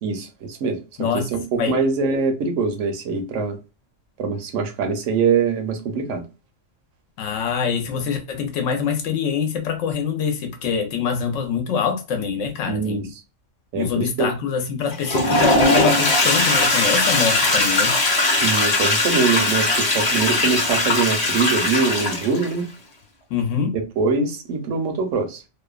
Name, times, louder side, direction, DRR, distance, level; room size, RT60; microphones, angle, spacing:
voice 1, 0.0-0.8 1.1-3.6 4.2-6.2 12.6-13.1 13.7-14.3 18.3-22.7 23.7-25.4, right 5 dB, 75° right, 1.0 m, -23 dB
voice 2, 7.2-13.1 13.7-17.9 23.3-23.8, left 6 dB, 75° left, 1.0 m, -24 dB
Toilet flush, 14.9-22.5, left 2 dB, 35° left, 0.8 m, -19 dB
2.7 x 2.1 x 2.2 m
omnidirectional pair, 1.3 m